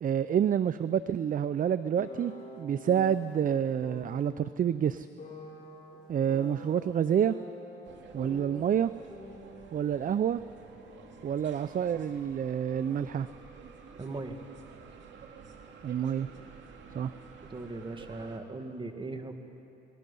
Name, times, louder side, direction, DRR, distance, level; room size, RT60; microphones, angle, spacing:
voice 1, 0.0-5.1 6.1-7.4 8.1-8.9 9.7-10.4 11.2-13.3 15.8-16.3 16.9-17.1, right 9 dB, 45° right, 14 dB, 0.5 m, -28 dB
sound 1, 2.0-3.3 3.8-4.3 5.2-6.8 7.3-8.8 9.1-11.3 11.5-13.1, left 2 dB, 40° left, 7.1 m, -47 dB
sound 2, 7.8-18.4, right 5 dB, 70° right, 2.2 m, -51 dB
voice 2, 14.0-14.4 17.4-19.3, right 3 dB, 25° right, 5 dB, 2.0 m, -39 dB
29.5 x 20.0 x 5.4 m, 2.8 s
cardioid pair, 90°, 20 cm